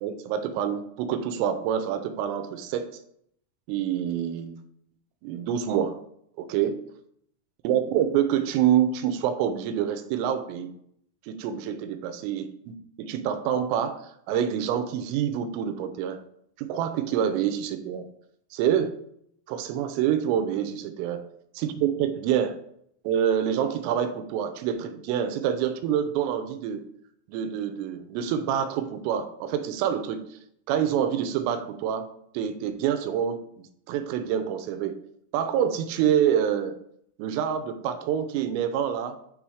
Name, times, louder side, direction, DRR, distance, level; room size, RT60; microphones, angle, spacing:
voice 1, 0.0-2.9 3.7-4.6 5.2-6.0 6.4-6.8 7.6-10.7 11.3-16.2 16.6-18.1 18.5-18.9 19.5-21.2 21.6-22.6 23.0-26.8 27.3-30.2 30.7-32.1 32.3-33.4 33.9-35.0 35.3-36.7 37.2-39.2, right 9 dB, 85° right, 10 dB, 3.2 m, -26 dB
8.2 x 3.4 x 4.8 m, 0.71 s
omnidirectional pair, 5.8 m